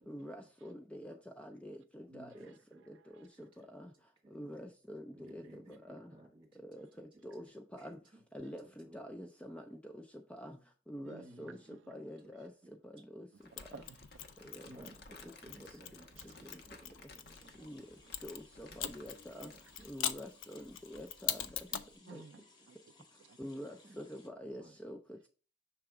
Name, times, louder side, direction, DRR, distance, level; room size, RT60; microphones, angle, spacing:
voice 1, 0.1-2.5 2.9-3.9 4.3-6.1 6.5-8.0 8.3-13.9 14.4-14.7 15.2-15.8 16.2-16.6 17.6-19.5 19.8-21.7 22.0-22.2 23.4-25.3, equal, 5° left, 0.4 m, -48 dB
voice 2, 2.1-2.9 3.3-3.7 4.2-4.4 5.1-6.7 6.9-7.4 7.8-9.0 11.2-11.8 12.2-12.3 12.6-12.8 14.6-17.7 18.0-18.1 18.8-18.9 19.4-20.7 21.7-21.8 22.1-22.2 23.8-24.0 24.6-24.8, right 1 dB, 25° right, 1.9 m, -58 dB
voice 3, 2.9-3.3 11.0-11.3 11.7-11.8 13.5-14.3 16.2-16.5 18.0-18.1 22.1-22.8 23.2-23.4, right 5 dB, 75° right, 0.3 m, -55 dB
Crumpling crinkling, 13.4-20.0, left 2 dB, 55° left, 1.0 m, -58 dB
Mechanisms, 13.6-17.4 18.1-21.9, left 10 dB, 85° left, 0.5 m, -42 dB
sound 1, 17.2-24.3, left 3 dB, 20° left, 0.8 m, -63 dB
5.8 x 3.4 x 4.7 m
head